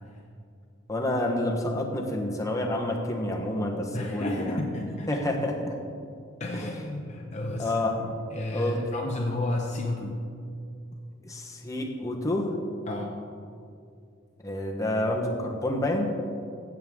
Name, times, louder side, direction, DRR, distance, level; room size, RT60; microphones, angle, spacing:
voice 1, 0.9-4.6 5.1-5.8 6.5-6.7 7.6-8.0 8.5-8.8 11.2-12.5 14.4-16.1, left 1 dB, 15° left, 1 dB, 1.1 m, -28 dB
voice 2, 3.9-5.2 6.4-10.2 12.9-13.1, left 2 dB, 35° left, 0 dB, 0.8 m, -32 dB
15.0 x 7.4 x 3.7 m, 2.4 s
head